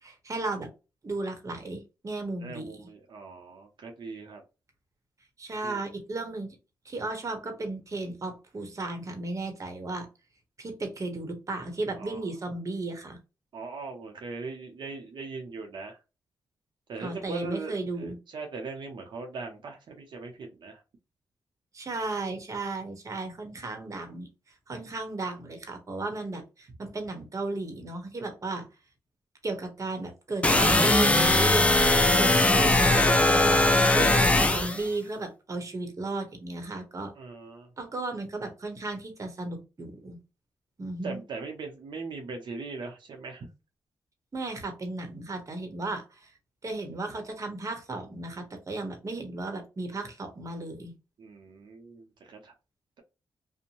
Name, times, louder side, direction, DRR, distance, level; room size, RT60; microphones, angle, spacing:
voice 1, 0.0-0.7 1.0-2.9 5.4-6.5 6.8-10.1 10.6-13.2 17.0-18.2 21.7-24.3 24.7-28.7 29.4-31.7 32.2-33.6 33.9-37.1 37.8-40.2 40.8-41.2 44.3-46.3 46.6-50.9, right 2 dB, 40° right, 6 dB, 0.9 m, -34 dB
voice 2, 2.4-4.4 5.6-5.8 12.0-12.3 13.5-16.0 16.9-20.8 37.2-37.7 41.0-43.5 51.2-52.5, right 4 dB, 65° right, 2 dB, 0.7 m, -40 dB
sound 1, 30.4-34.8, left 2 dB, 15° left, 0.5 m, -20 dB
2.6 x 2.1 x 2.9 m, 0.29 s
cardioid pair, 65°, 8 cm